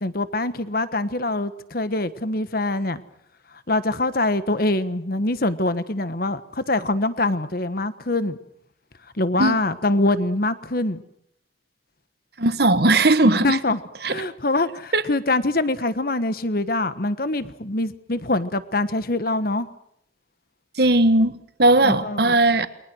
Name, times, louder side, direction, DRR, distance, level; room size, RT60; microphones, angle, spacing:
voice 1, 0.0-3.0 3.7-8.4 9.2-11.0 13.3-13.8 14.1-19.7 21.8-22.4, left 2 dB, 50° left, 1.3 m, -24 dB
voice 2, 12.4-13.6 14.0-14.2 14.9-15.0 20.8-22.7, right 2 dB, 55° right, 1.4 m, -18 dB
29.0 x 22.5 x 6.4 m
head